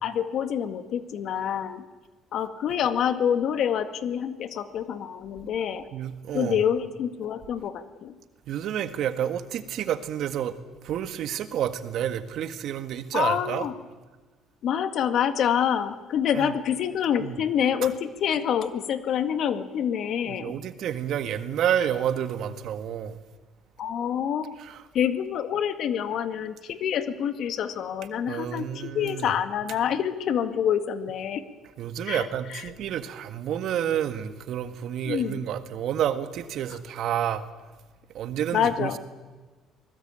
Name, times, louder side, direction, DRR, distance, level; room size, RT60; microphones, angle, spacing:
voice 1, 0.0-1.8 2.3-5.8 6.3-8.1 13.1-13.7 14.6-20.5 23.8-24.5 24.9-31.4 32.1-32.6 35.0-35.5 38.5-39.0, left 8 dB, 65° left, 1.9 m, -27 dB
voice 2, 5.9-6.6 8.5-10.5 10.8-13.7 16.4-16.5 17.2-17.4 20.3-23.2 24.6-24.8 28.3-29.3 31.8-37.5 38.1-39.0, right 10 dB, 65° right, 1.7 m, -29 dB
24.5 x 19.5 x 9.0 m
supercardioid pair, 80°, 0 cm